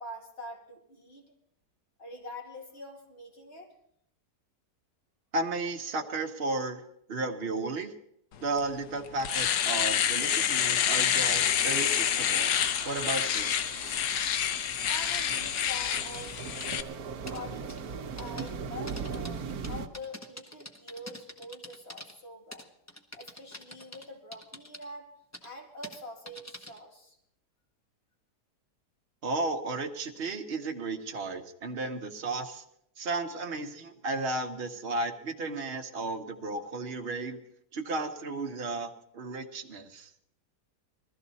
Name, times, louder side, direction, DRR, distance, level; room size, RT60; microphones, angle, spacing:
voice 1, 0.0-1.3 2.0-3.7 14.8-16.4 17.3-22.7 23.1-25.1 25.4-27.2, left 1 dB, 35° left, 0 dB, 2.7 m, -45 dB
voice 2, 5.3-6.8 7.1-7.9 8.4-12.5 12.8-13.5 29.2-32.6 33.0-37.4 37.7-40.1, right 3 dB, 40° right, 3 dB, 1.3 m, -34 dB
Domestic sounds home sounds, 8.6-8.7 9.1-16.8, left 9 dB, 75° left, 1.3 m, -28 dB
sound 1, 10.9-19.9, right 5 dB, 65° right, 1.3 m, -40 dB
sound 2, 15.0-16.3 16.6-16.7 17.3-17.4 17.7-17.8 18.2-18.5 18.9-22.1 22.5-24.0 24.3-24.8 25.3-25.5 25.8-26.0 26.3-26.8, left 1 dB, 10° left, 0.9 m, -45 dB
20.5 x 14.0 x 4.1 m, 0.73 s
omnidirectional pair, 1.8 m